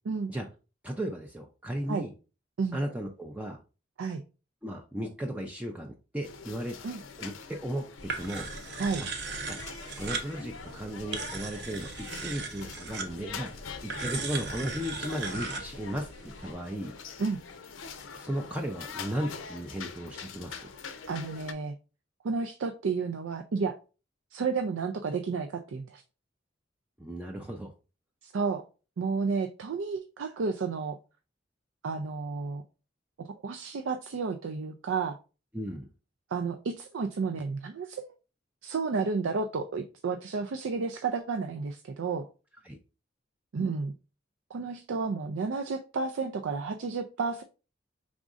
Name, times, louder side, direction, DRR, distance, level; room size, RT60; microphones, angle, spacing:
voice 1, 0.8-2.1 2.7-3.6 4.6-6.7 7.2-8.5 9.5-9.6 10.0-13.5 13.8-16.1 16.4-16.9 18.2-20.7 27.0-27.7 35.5-35.9 42.6-42.8, right 1 dB, 5° right, 2 dB, 0.4 m, -35 dB
sound 1, 6.2-21.5, left 5 dB, 85° left, 0.6 m, -44 dB
sound 2, 8.0-16.5, right 4 dB, 60° right, 0.8 m, -38 dB
voice 2, 21.1-21.7 22.2-23.8 24.3-26.0 28.2-28.7 29.0-31.0 31.8-32.6 33.2-35.2 36.3-38.1 38.6-42.3 43.5-43.9 44.5-47.4, right 4 dB, 80° right, 6 dB, 0.4 m, -31 dB
5.0 x 3.6 x 2.5 m, 0.33 s
head